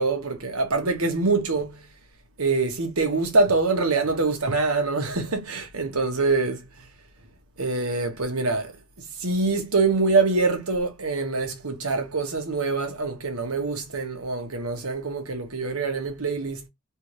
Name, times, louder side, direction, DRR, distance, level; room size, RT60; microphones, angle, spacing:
voice 1, 0.0-1.8 2.4-6.6 7.6-8.7 9.2-16.6, right 3 dB, 90° right, 1.4 m, -24 dB
3.5 x 2.9 x 3.0 m
head